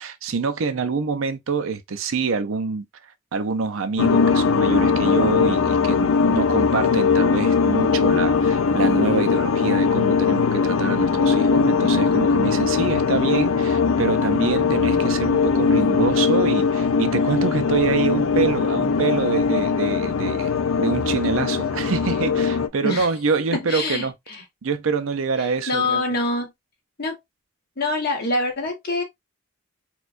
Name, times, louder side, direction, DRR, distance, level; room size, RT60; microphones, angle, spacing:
voice 1, 0.0-2.8 3.3-20.5 20.8-24.1 24.6-26.2, right 4 dB, 75° right, 0.5 m, -26 dB
sound 1, 4.0-22.7, left 5 dB, 75° left, 0.4 m, -20 dB
voice 2, 23.5-24.4 25.7-26.5 27.0-27.2 27.8-29.0, left 2 dB, 45° left, 1.2 m, -25 dB
4.3 x 2.3 x 2.4 m
head